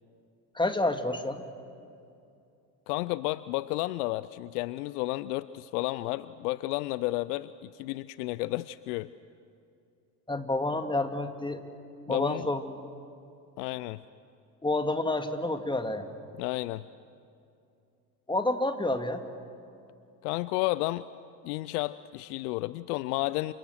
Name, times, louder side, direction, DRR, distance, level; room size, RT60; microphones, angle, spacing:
voice 1, 0.5-1.4 10.3-11.6 12.1-12.9 14.6-16.1 18.3-19.2, left 2 dB, 10° left, 7 dB, 2.2 m, -29 dB
voice 2, 2.9-9.1 12.1-12.5 13.6-14.0 16.4-16.9 20.2-21.0 21.4-23.5, left 19 dB, 70° left, 17 dB, 0.6 m, -32 dB
29.0 x 25.0 x 6.3 m, 2.5 s
figure-of-eight pair, 55°, 48 cm